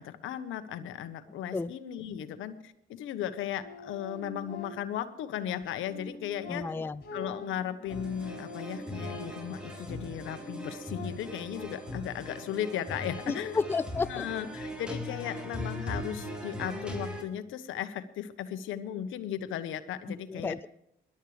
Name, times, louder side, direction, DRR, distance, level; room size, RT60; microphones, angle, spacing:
voice 1, 0.0-6.6 7.1-13.6 14.1-20.5, left 10 dB, 85° left, 10 dB, 1.2 m, -36 dB
sound 1, 3.6-5.1 5.6-9.6 10.1-11.6, left 2 dB, 55° left, 4.2 m, -45 dB
sound 2, 6.2-9.5, left 1 dB, 50° right, 5.3 m, -56 dB
voice 2, 6.5-7.0 13.3-14.3 20.1-20.7, left 4 dB, 10° left, 15 dB, 0.4 m, -32 dB
sound 3, 7.9-17.2, left 1 dB, 5° right, 3.8 m, -39 dB
21.5 x 12.0 x 3.4 m, 0.78 s
cardioid pair, 90°, 20 cm